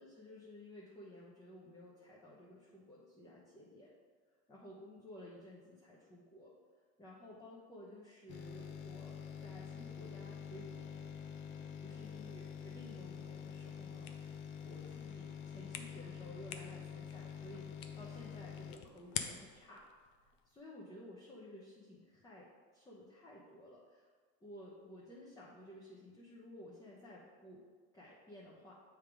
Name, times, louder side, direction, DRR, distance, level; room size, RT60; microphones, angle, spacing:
voice 1, 0.0-3.9 4.5-6.5 7.0-11.1 11.5-14.1 14.6-17.7 18.0-19.9 20.5-24.1 24.4-27.6 27.9-28.7, left 1 dB, 10° left, -6 dB, 0.9 m, -54 dB
sound 1, 8.3-19.9 20.3-20.4, left 7 dB, 40° left, 0.5 m, -47 dB
sound 2, 14.0-19.7, left 9 dB, 75° left, 0.7 m, -48 dB
7.4 x 3.6 x 4.7 m, 1.5 s
cardioid pair, 135°, 31 cm